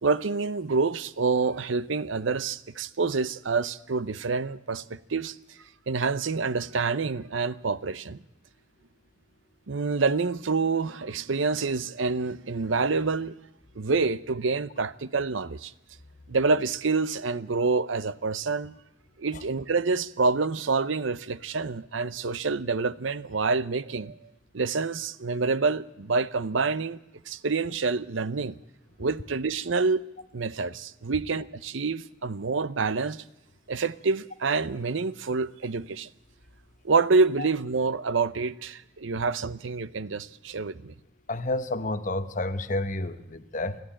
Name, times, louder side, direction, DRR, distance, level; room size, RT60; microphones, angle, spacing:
voice 1, 0.0-5.4 5.9-8.2 9.7-13.3 13.8-15.7 16.3-18.7 19.2-24.2 24.5-27.0 27.3-28.6 29.0-30.0 30.3-33.2 33.7-36.1 36.8-40.9, right 4 dB, 75° right, 0.7 m, -27 dB
voice 2, 41.3-43.8, left 2 dB, 40° left, 1.1 m, -30 dB
29.5 x 12.0 x 8.9 m
head